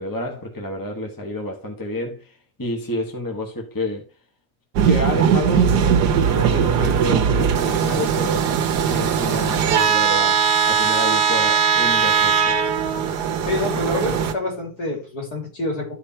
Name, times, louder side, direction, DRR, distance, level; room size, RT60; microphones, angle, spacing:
voice 1, 0.0-4.1 4.8-5.8 6.2-8.5 8.9-12.6, left 1 dB, 10° left, 1.7 m, -29 dB
sound 1, 4.8-14.3, right 7 dB, 75° right, 1.5 m, -19 dB
voice 2, 13.4-15.9, left 2 dB, 65° left, 3.7 m, -27 dB
12.5 x 5.0 x 4.4 m
omnidirectional pair, 1.8 m